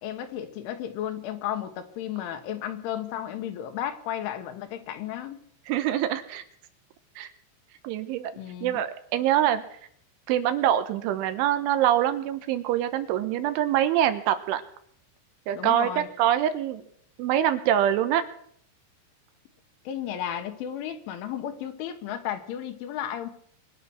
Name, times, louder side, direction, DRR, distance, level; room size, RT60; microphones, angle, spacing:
voice 1, 0.0-5.4 8.4-8.8 15.6-16.1 19.9-23.3, left 10 dB, 75° left, 7 dB, 3.7 m, -33 dB
voice 2, 5.7-6.4 7.2-7.3 7.8-8.3 8.6-9.6 10.3-14.6 15.5-16.8 17.2-18.2, right 11 dB, 80° right, 10 dB, 3.3 m, -24 dB
23.0 x 9.9 x 6.3 m, 0.66 s
omnidirectional pair, 5.7 m